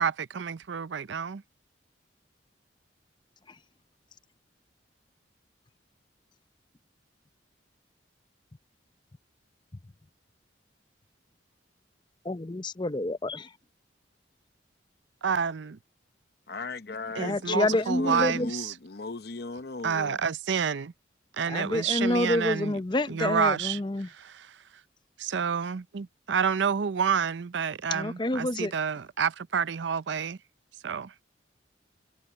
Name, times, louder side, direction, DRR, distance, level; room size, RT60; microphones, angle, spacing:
voice 1, 0.0-1.4 15.2-15.8 17.2-18.7 19.8-20.9 21.3-22.8 23.1-23.8 24.1-24.6 25.2-30.4 30.8-31.1, right 6 dB, 75° right, 0.5 m, -29 dB
voice 2, 12.2-13.5 17.2-18.5 21.5-24.1 27.9-28.7, left 1 dB, 25° left, 0.6 m, -28 dB
voice 3, 16.5-20.2, left 3 dB, 55° left, 0.8 m, -37 dB
head